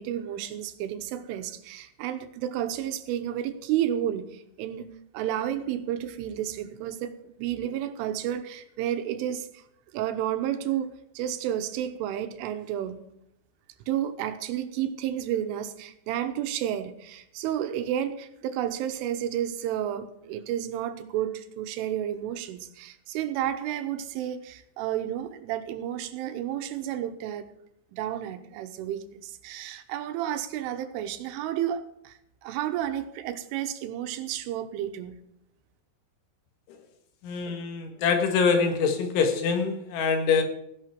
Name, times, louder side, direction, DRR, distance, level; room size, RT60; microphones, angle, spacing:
voice 1, 0.0-9.6 9.9-13.0 13.9-27.5 27.9-35.2, right 11 dB, 85° right, 9 dB, 3.5 m, -31 dB
voice 2, 37.2-40.4, left 5 dB, 75° left, 5 dB, 4.0 m, -24 dB
16.5 x 11.0 x 4.6 m, 0.79 s
omnidirectional pair, 5.6 m